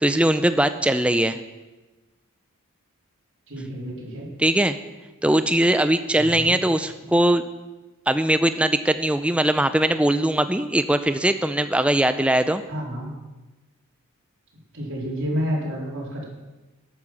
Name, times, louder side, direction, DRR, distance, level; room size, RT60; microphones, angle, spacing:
voice 1, 0.0-1.4 4.4-4.8 5.2-7.4 8.1-12.6, right 1 dB, 5° right, 10 dB, 0.4 m, -20 dB
voice 2, 3.5-4.3 6.1-6.5 12.7-13.1 14.7-16.2, equal, 60° right, -4 dB, 3.8 m, -29 dB
12.5 x 8.9 x 5.9 m, 1.1 s
head